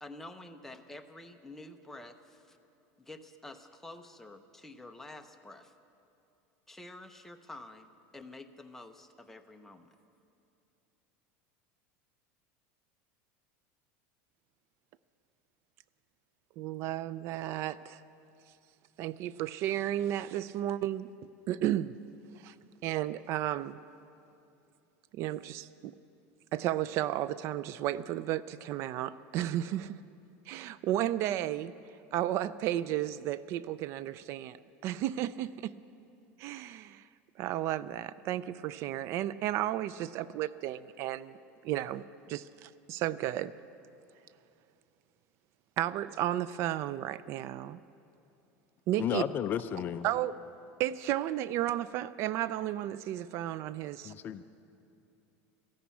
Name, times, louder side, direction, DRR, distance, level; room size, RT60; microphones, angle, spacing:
voice 1, 0.0-2.6 3.0-5.7 6.7-10.0, left 2 dB, 5° left, 5 dB, 0.7 m, -49 dB
voice 2, 16.6-18.0 19.0-21.1 21.5-21.9 22.4-22.5 22.8-23.8 25.1-25.9 26.5-30.0 30.5-31.7 32.1-34.6 34.8-35.7 36.4-37.0 37.4-41.4 41.6-43.5 45.8-47.8 48.9-49.2 50.0-50.4 50.8-54.1, right 13 dB, 45° right, 17 dB, 0.3 m, -33 dB
voice 3, 49.0-50.1 54.0-54.4, left 10 dB, 30° left, 12 dB, 0.4 m, -33 dB
14.0 x 11.5 x 8.4 m, 2.7 s
supercardioid pair, 145°, 6 cm